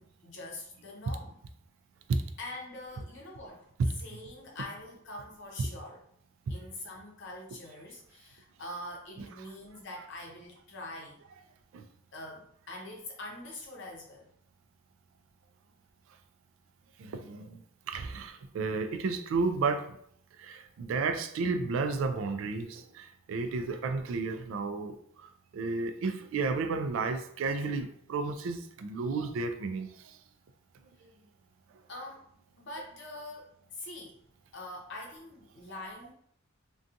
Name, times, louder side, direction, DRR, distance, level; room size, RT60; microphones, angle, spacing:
voice 1, 0.0-1.4 2.4-3.7 4.0-6.0 6.5-11.2 12.1-14.3 31.9-32.3 32.6-34.2 34.5-36.1, left 1 dB, 60° left, 0.7 m, -44 dB
voice 2, 17.0-17.6 17.9-20.0 20.4-30.2, right 4 dB, 70° right, 0.3 m, -32 dB
2.6 x 2.3 x 2.5 m
head